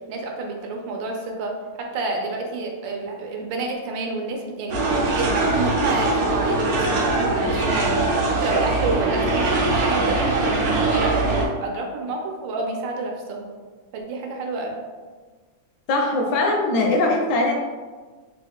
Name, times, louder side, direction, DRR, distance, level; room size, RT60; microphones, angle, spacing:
voice 1, 0.1-4.8 5.2-11.3 11.6-13.5 13.9-14.8, right 3 dB, 80° right, 2 dB, 1.3 m, -29 dB
sound 1, 4.7-11.5, right 2 dB, 65° right, 1.0 m, -22 dB
voice 2, 15.9-17.5, left 2 dB, 75° left, 0 dB, 1.2 m, -21 dB
3.6 x 2.3 x 3.5 m, 1.4 s
omnidirectional pair, 2.0 m